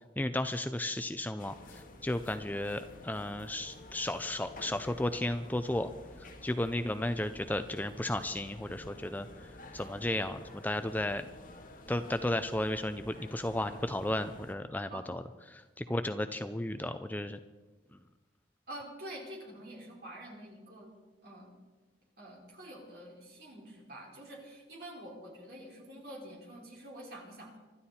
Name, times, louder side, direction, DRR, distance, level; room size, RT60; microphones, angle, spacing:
voice 1, 0.2-1.5 2.0-5.9 6.4-9.3 9.7-11.2 11.9-15.6 15.9-17.4, left 1 dB, 10° left, 10 dB, 0.4 m, -34 dB
sound 1, 1.4-14.5, left 1 dB, 45° left, 1.8 m, -51 dB
voice 2, 18.7-20.9 21.2-21.5 22.2-27.5, right 1 dB, 55° right, -2 dB, 5.0 m, -47 dB
25.0 x 12.5 x 4.3 m, 1.2 s
head